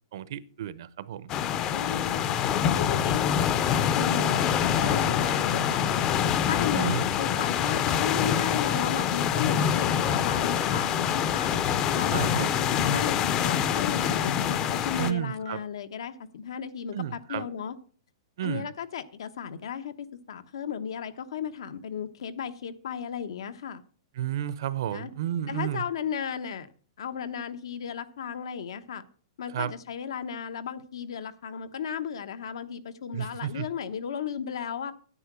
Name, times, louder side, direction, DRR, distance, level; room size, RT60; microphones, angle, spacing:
voice 1, 0.1-1.3 6.7-7.1 12.1-12.6 15.0-15.6 16.9-17.5 18.4-18.7 24.1-25.8 29.5-29.7 33.1-33.7, right 11 dB, 55° right, 0.7 m, -32 dB
sound 1, 1.3-15.1, left 8 dB, 25° left, 0.6 m, -25 dB
voice 2, 1.7-2.4 2.7-3.4 3.9-6.1 6.4-11.5 11.9-17.8 18.4-19.9 20.3-23.8 24.9-25.1 25.5-26.7 27.0-29.0 29.4-34.9, left 8 dB, 75° left, 1.1 m, -35 dB
9.9 x 9.1 x 6.2 m
hypercardioid pair, 170°, 3 cm